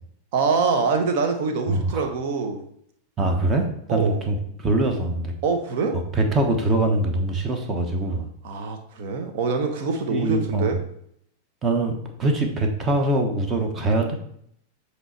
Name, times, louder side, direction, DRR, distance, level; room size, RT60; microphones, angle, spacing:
voice 1, 0.3-2.6 3.9-4.2 5.4-6.0 8.4-10.8 13.9-14.1, right 4 dB, 50° right, 5 dB, 1.1 m, -25 dB
voice 2, 1.7-2.1 3.2-5.3 6.1-8.3 10.1-10.7 11.6-14.1, right 2 dB, 25° right, 4 dB, 1.1 m, -23 dB
7.9 x 3.3 x 4.5 m, 0.69 s
figure-of-eight pair, 90°, 0 cm